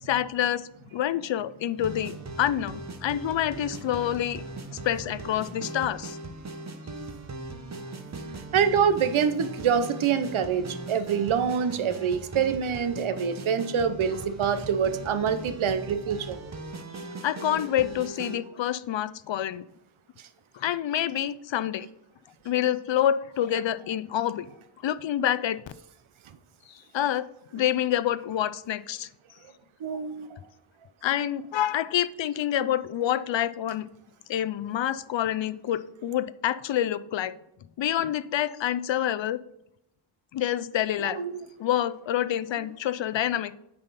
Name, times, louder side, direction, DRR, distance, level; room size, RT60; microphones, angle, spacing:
voice 1, 0.0-4.4 4.7-6.2 17.2-19.6 20.5-21.9 22.4-24.5 24.8-25.6 26.7-27.3 27.5-29.1 31.0-33.9 34.3-37.4 37.8-39.4 40.3-41.2 41.6-43.5, left 11 dB, 65° left, 15 dB, 0.5 m, -27 dB
sound 1, 1.8-18.4, right 3 dB, 35° right, 0.8 m, -39 dB
voice 2, 8.5-16.4 29.8-30.4 41.0-41.4, right 7 dB, 75° right, 11 dB, 0.8 m, -26 dB
8.8 x 5.7 x 4.1 m, 0.82 s
wide cardioid pair, 150°, 49 cm